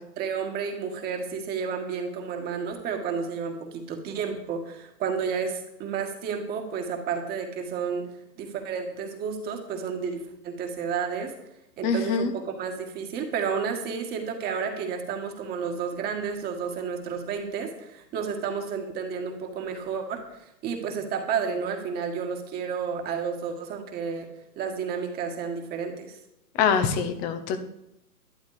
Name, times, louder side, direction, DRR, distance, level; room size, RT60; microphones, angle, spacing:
voice 1, 0.2-8.1 8.4-11.3 11.8-20.2 20.6-24.3 24.6-26.2, right 6 dB, 20° right, 3 dB, 1.8 m, -31 dB
voice 2, 11.8-12.3 26.6-27.6, left 6 dB, 15° left, 9 dB, 0.8 m, -24 dB
12.0 x 11.0 x 5.0 m, 0.83 s
hypercardioid pair, 135°, 49 cm